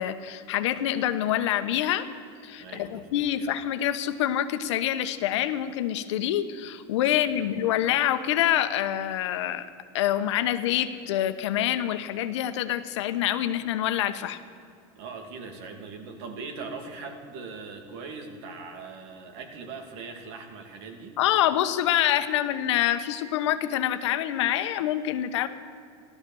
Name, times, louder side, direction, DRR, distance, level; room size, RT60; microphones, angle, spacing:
voice 1, 0.0-2.1 2.4-9.6 9.9-14.4 21.2-25.5, left 12 dB, 85° left, 10 dB, 1.0 m, -26 dB
voice 2, 2.6-3.3 7.1-7.5 15.0-21.2, right 4 dB, 70° right, 4 dB, 2.3 m, -40 dB
14.5 x 12.5 x 7.1 m, 2.4 s
supercardioid pair, 140°, 15 cm